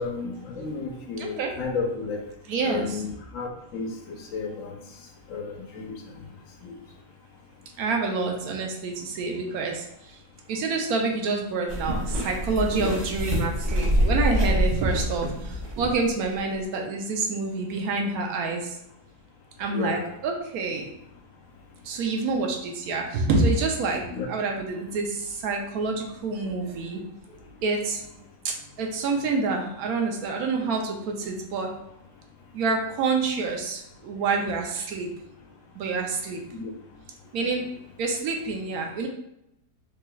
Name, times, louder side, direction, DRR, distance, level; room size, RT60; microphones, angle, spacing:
voice 1, 0.0-2.2 2.6-4.7 5.3-6.0 6.6-6.7 12.7-13.0 19.7-20.0 24.1-24.3 36.5-36.7, left 4 dB, 65° left, 2 dB, 1.0 m, -32 dB
voice 2, 1.2-1.6 2.5-3.0 7.8-10.2 10.5-18.8 19.6-20.9 21.8-27.0 27.6-31.7 32.5-35.1 35.7-36.4 37.3-39.1, right 3 dB, 75° right, 2 dB, 1.1 m, -27 dB
sound 1, 11.7-16.2 16.5-16.6, equal, 20° right, 0.9 m, -26 dB
3.7 x 3.1 x 2.3 m, 0.82 s
omnidirectional pair, 1.6 m